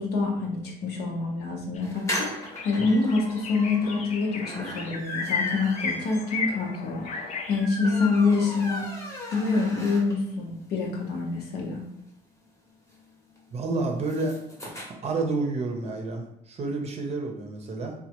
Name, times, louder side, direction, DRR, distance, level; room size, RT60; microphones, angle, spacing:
voice 1, 0.0-2.3 2.6-7.1 7.5-8.9 9.3-11.8, left 3 dB, 70° left, 0 dB, 0.8 m, -26 dB
sound 1, 1.8-1.9 2.2-7.6, left 5 dB, 45° left, 0.4 m, -34 dB
sound 2, 1.8-10.4 10.8-10.9 11.1-11.2 11.5-14.9, left 1 dB, 15° left, 0.9 m, -38 dB
voice 2, 13.5-14.4 14.6-14.7 15.0-17.9, right 3 dB, 40° right, 2 dB, 0.6 m, -29 dB
3.2 x 2.2 x 2.9 m, 0.75 s
cardioid pair, 110°, 17 cm